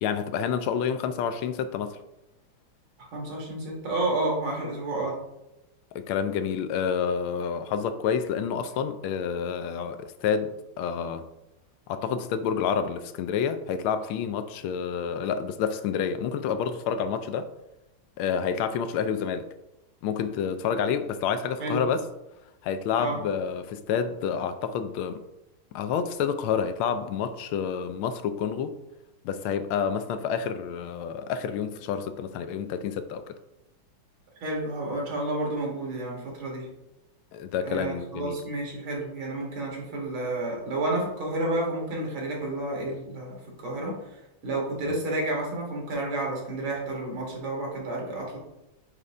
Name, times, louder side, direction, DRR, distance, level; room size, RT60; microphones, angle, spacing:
voice 1, 0.0-2.0 5.9-11.2 11.9-17.5 18.2-19.5 20.0-22.0 22.6-25.2 25.7-28.8 29.2-33.3 37.3-38.4, left 7 dB, 80° left, 1.4 m, -29 dB
voice 2, 3.0-5.2 21.6-21.8 23.0-23.2 34.4-36.7 37.6-48.4, right 2 dB, 70° right, 2.4 m, -30 dB
6.8 x 3.2 x 4.8 m
omnidirectional pair, 2.3 m